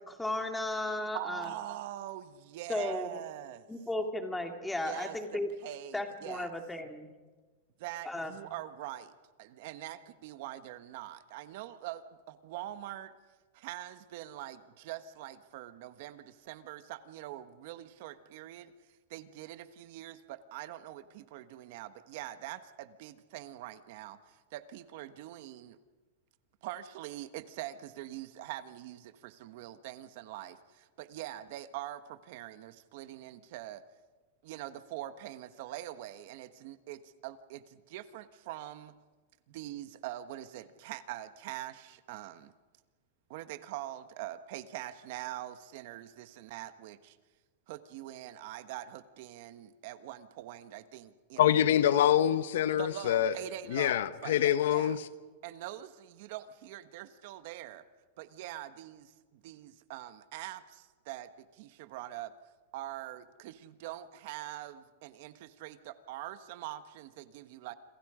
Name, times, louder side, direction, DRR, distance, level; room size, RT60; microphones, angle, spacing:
voice 1, 0.1-1.5 2.7-3.1 3.7-5.5 5.9-7.1 8.0-8.3, left 2 dB, 5° left, 4 dB, 2.3 m, -35 dB
voice 2, 1.1-3.7 4.8-6.5 7.8-13.1 13.5-18.7 19.1-25.8 26.6-33.8 34.4-38.9 39.5-42.5 43.3-47.2 47.7-51.6 52.7-55.0 55.4-57.8 58.2-62.3 62.7-67.7, right 13 dB, 55° right, 11 dB, 1.4 m, -44 dB
voice 3, 51.4-53.3 53.7-55.0, left 11 dB, 75° left, 12 dB, 1.3 m, -25 dB
27.5 x 27.0 x 5.1 m, 1.3 s
supercardioid pair, 155°, 0 cm